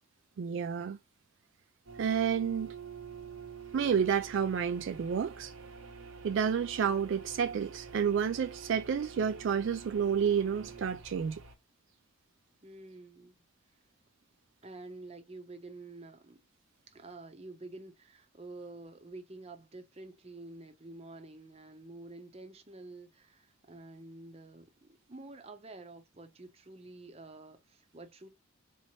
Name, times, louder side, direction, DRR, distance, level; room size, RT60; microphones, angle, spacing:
voice 1, 0.4-1.0 2.0-2.7 3.7-5.5 6.2-11.4, right 7 dB, 60° right, 0.3 m, -30 dB
sound 1, 1.9-11.6, right 5 dB, 85° right, 1.1 m, -48 dB
voice 2, 12.6-13.4 14.6-16.4 16.9-28.3, right 2 dB, 30° right, 0.8 m, -49 dB
4.3 x 3.0 x 2.8 m
head